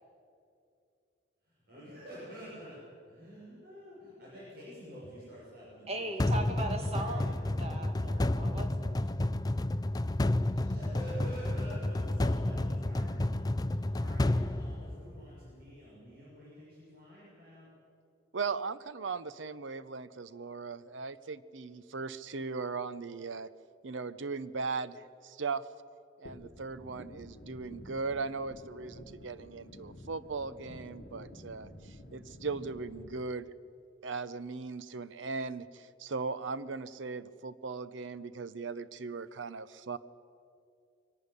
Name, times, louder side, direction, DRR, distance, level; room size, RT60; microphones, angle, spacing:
voice 1, 1.5-2.8 3.0-6.4 6.9-7.3 10.7-17.7, equal, 55° right, -8 dB, 6.9 m, -48 dB
voice 2, 5.9-7.3 7.6-9.0, right 2 dB, 35° right, 3 dB, 2.2 m, -38 dB
sound 1, 6.2-15.4, left 1 dB, 20° left, 0.5 m, -31 dB
voice 3, 18.3-23.5 23.8-25.6 26.2-33.5 34.0-40.0, right 4 dB, 80° right, 15 dB, 0.7 m, -38 dB
sound 2, 26.3-33.2, left 1 dB, 60° left, 1.3 m, -50 dB
23.5 x 12.0 x 9.8 m, 2.5 s
head